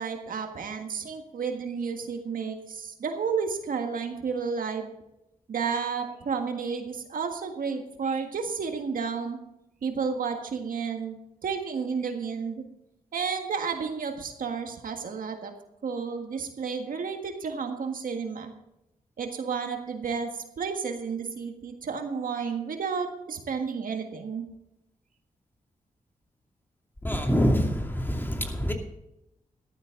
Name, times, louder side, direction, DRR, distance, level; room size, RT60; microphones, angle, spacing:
voice 1, 0.0-4.9 5.5-9.4 9.8-12.6 13.1-15.5 15.8-18.5 19.2-24.5, right 5 dB, 80° right, 5 dB, 1.7 m, -31 dB
voice 2, 27.0-28.7, equal, 15° left, 3 dB, 2.6 m, -25 dB
14.0 x 12.0 x 3.9 m, 0.87 s
cardioid pair, 65°, 14 cm